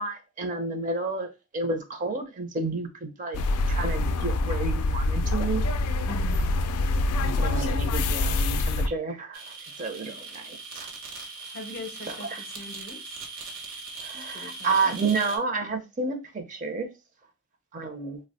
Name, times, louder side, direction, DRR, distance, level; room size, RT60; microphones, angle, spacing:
voice 1, 0.0-5.6 7.4-9.4 9.8-10.9 12.3-12.4 14.0-16.9 17.7-18.2, right 3 dB, 35° right, 0.5 m, -30 dB
sound 1, 3.3-8.9, left 2 dB, 90° left, 0.3 m, -25 dB
voice 2, 6.0-6.6 10.0-10.4 11.5-13.2 14.1-14.8, left 2 dB, 45° left, 0.6 m, -42 dB
sound 2, 9.3-15.4, right 4 dB, 65° right, 0.9 m, -40 dB
2.8 x 2.1 x 4.0 m
head